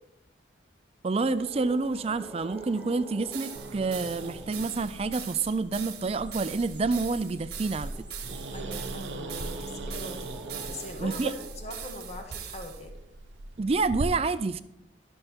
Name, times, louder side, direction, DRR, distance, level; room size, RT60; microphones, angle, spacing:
voice 1, 1.0-7.9 11.0-11.3 13.6-14.6, right 3 dB, 30° right, 13 dB, 0.4 m, -28 dB
sound 1, 1.2-11.9, right 3 dB, 5° right, 1.1 m, -47 dB
sound 2, 3.3-12.8, right 10 dB, 55° right, 1.6 m, -42 dB
Growling, 3.5-14.0, right 2 dB, 85° right, 0.8 m, -40 dB
voice 2, 8.5-10.3 10.7-12.9, left 1 dB, 35° left, 3 dB, 1.4 m, -41 dB
12.5 x 6.4 x 4.5 m, 0.85 s
head